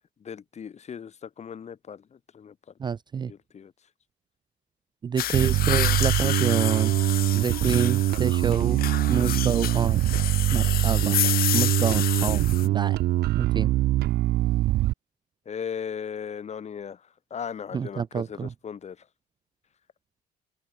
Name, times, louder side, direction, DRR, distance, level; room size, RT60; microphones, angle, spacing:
voice 1, 0.2-2.6 3.3-3.7 15.5-19.1, left 7 dB, 40° left, 6.2 m, -37 dB
voice 2, 2.8-3.3 5.0-7.0 7.3-8.8 9.1-10.0 10.5-11.2 11.5-13.0 13.3-13.7 17.7-18.5, right 6 dB, 25° right, 0.4 m, -28 dB
sound 1, 5.2-12.7, left 13 dB, 60° left, 1.1 m, -30 dB
Bass guitar, 5.3-14.9, right 16 dB, 75° right, 1.0 m, -23 dB
cardioid pair, 110°, 17 cm